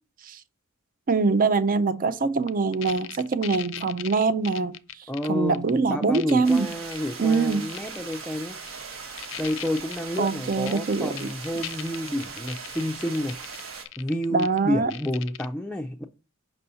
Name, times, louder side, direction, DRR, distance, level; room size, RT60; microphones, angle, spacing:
voice 1, 1.1-6.7 7.2-7.7 10.2-11.3 14.3-14.9, right 4 dB, 45° right, 0.5 m, -24 dB
sound 1, 2.5-5.3 5.5-5.7 6.0-7.0 7.3-8.1 8.7-8.8 9.2-14.6 14.9-15.5, left 13 dB, 65° left, 0.4 m, -38 dB
voice 2, 5.1-8.6 9.4-13.4 14.0-16.0, left 1 dB, 5° left, 0.4 m, -30 dB
sound 2, 6.4-13.8, right 5 dB, 75° right, 1.4 m, -39 dB
5.4 x 4.1 x 5.6 m
head